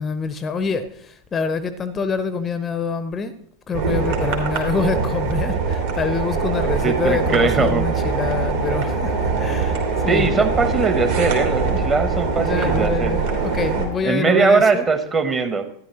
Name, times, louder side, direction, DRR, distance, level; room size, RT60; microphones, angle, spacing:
voice 1, 0.0-3.4 3.7-10.5 11.7-11.8 12.4-14.9, left 5 dB, 20° left, 0.6 m, -26 dB
sound 1, 3.7-13.9, right 4 dB, 60° right, 2.4 m, -22 dB
voice 2, 6.8-7.8 10.1-13.1 14.0-15.7, right 4 dB, 20° right, 1.0 m, -20 dB
12.5 x 10.5 x 2.9 m
figure-of-eight pair, 90°, 0 cm